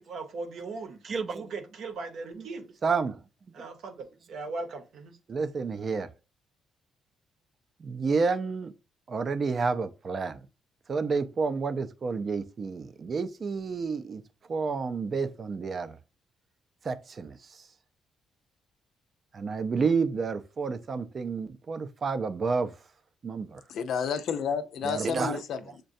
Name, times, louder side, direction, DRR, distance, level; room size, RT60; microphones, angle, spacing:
voice 1, 0.0-1.0 1.3-2.7 3.5-5.2, right 3 dB, 70° right, 0.8 m, -38 dB
voice 2, 1.1-1.5 2.8-3.2 5.3-6.1 7.8-8.7 9.1-10.4 10.9-14.2 14.5-16.0 16.8-17.4 19.3-22.7 23.2-23.6 24.8-25.4, right 4 dB, 45° right, 0.4 m, -30 dB
voice 3, 23.7-25.8, left 7 dB, 70° left, 0.4 m, -31 dB
6.3 x 2.2 x 2.6 m
cardioid pair, 90°, 0 cm